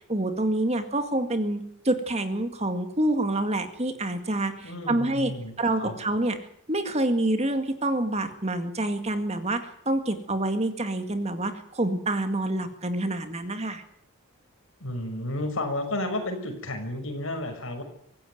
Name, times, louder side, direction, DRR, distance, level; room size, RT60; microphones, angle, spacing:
voice 1, 0.1-5.3 5.6-6.4 6.7-13.8, right 1 dB, 30° right, 8 dB, 2.1 m, -27 dB
voice 2, 4.6-6.0 14.8-17.8, left 1 dB, 65° left, 5 dB, 5.9 m, -32 dB
24.5 x 15.5 x 9.4 m, 0.68 s
head